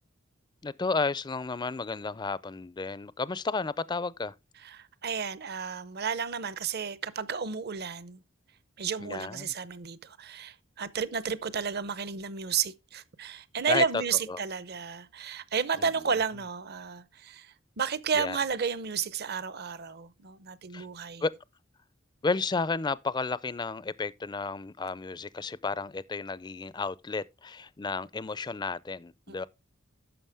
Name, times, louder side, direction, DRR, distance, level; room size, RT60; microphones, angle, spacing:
voice 1, 0.6-4.3 9.0-9.5 13.7-14.0 14.3-14.4 15.8-15.9 18.1-18.4 20.7-20.9 21.2-21.3 22.2-29.5, left 4 dB, 20° left, 0.4 m, -32 dB
voice 2, 4.6-8.2 8.8-21.2 29.3-29.5, right 6 dB, 50° right, 0.7 m, -32 dB
11.0 x 6.8 x 3.4 m
head